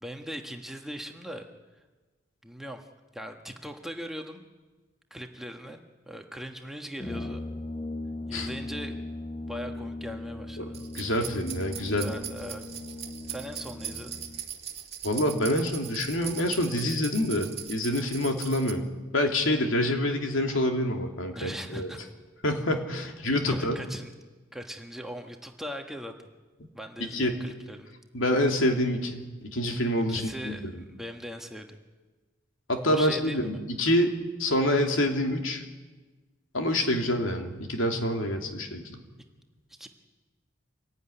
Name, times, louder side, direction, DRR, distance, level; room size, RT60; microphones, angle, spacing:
voice 1, 0.0-1.4 2.4-2.9 3.1-4.4 5.1-7.4 8.3-9.0 9.5-10.9 11.9-12.6 13.3-14.2 21.4-22.0 23.5-24.1 24.5-26.1 26.7-27.9 30.1-30.6 30.9-31.8 32.8-33.5 39.7-39.9, equal, ahead, 3 dB, 1.4 m, -39 dB
Brass instrument, 7.0-14.5, left 2 dB, 25° left, 0.9 m, -38 dB
sound 1, 10.7-18.7, right 9 dB, 30° right, 1.9 m, -40 dB
voice 2, 10.9-12.1 15.0-18.8 19.1-21.9 22.4-23.8 27.1-27.4 28.1-30.8 32.7-34.1 34.4-35.6 36.5-39.0, left 1 dB, 75° left, 3 dB, 2.8 m, -27 dB
25.5 x 16.5 x 10.0 m, 1.3 s
head